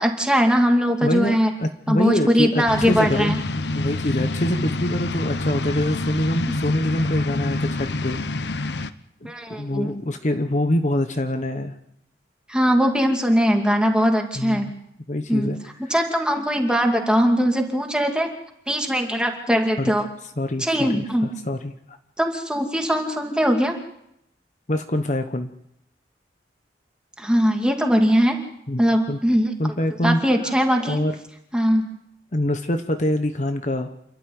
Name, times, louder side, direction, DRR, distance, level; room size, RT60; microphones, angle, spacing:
voice 1, 0.0-1.5 1.9-3.4 9.2-10.0 12.5-14.7 15.3-15.5 15.9-18.3 18.7-20.0 20.6-21.3 22.2-23.8 27.2-28.4 28.8-29.5 30.0-31.0 31.5-31.8, equal, 5° right, 3 dB, 2.5 m, -20 dB
voice 2, 1.0-3.3 3.7-8.7 9.2-11.7 14.4-14.7 15.1-15.6 19.8-19.9 20.4-22.0 24.7-25.5 28.7-28.8 29.1-29.2 29.6-30.6 30.9-31.1 32.3-33.9, left 1 dB, 40° left, 7 dB, 1.1 m, -25 dB
sound 1, 2.7-8.9, left 2 dB, 70° left, 0.9 m, -26 dB
28.0 x 12.5 x 9.5 m, 0.78 s
head